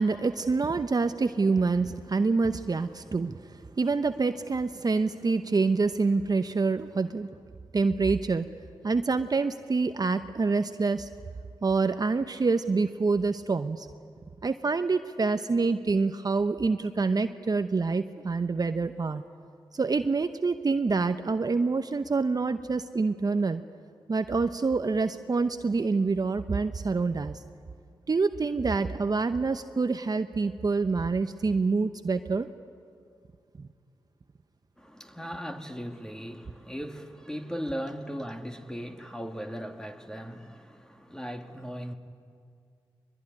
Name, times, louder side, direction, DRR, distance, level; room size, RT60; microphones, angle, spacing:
voice 1, 0.0-7.3 7.7-8.4 8.8-11.1 11.6-13.9 14.4-19.2 19.7-23.6 24.1-27.4 28.1-32.5 33.6-33.7, right 4 dB, 45° right, 9 dB, 0.9 m, -26 dB
voice 2, 34.8-41.9, equal, 5° left, 5 dB, 2.4 m, -38 dB
22.5 x 21.0 x 9.9 m, 2.4 s
supercardioid pair, 40°, 9 cm